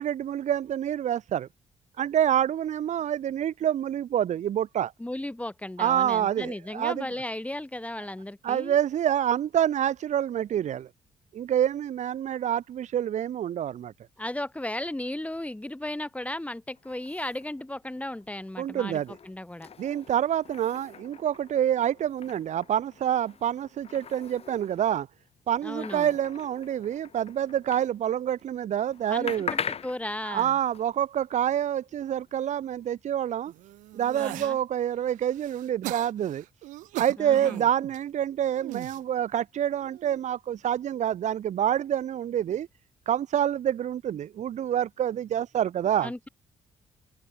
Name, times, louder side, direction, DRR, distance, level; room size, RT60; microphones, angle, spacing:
voice 1, 0.0-1.5 2.0-4.9 5.8-7.1 8.4-10.9 11.3-13.9 18.6-19.1 19.8-25.1 25.5-29.5 30.3-33.5 33.9-36.4 37.0-42.7 43.1-46.1, right 10 dB, 65° right, 1.6 m, -27 dB
voice 2, 5.0-8.8 14.2-19.7 25.6-26.1 29.1-30.6 34.1-34.6 37.2-37.6 46.0-46.3, left 1 dB, 10° left, 2.7 m, -35 dB
sound 1, 16.8-28.5 28.7-32.9, left 7 dB, 50° left, 2.1 m, -42 dB
sound 2, 33.5-34.5 35.1-38.0 38.5-39.0 39.8-40.2, right 17 dB, 85° right, 0.7 m, -39 dB
open air
supercardioid pair, 60°, 13 cm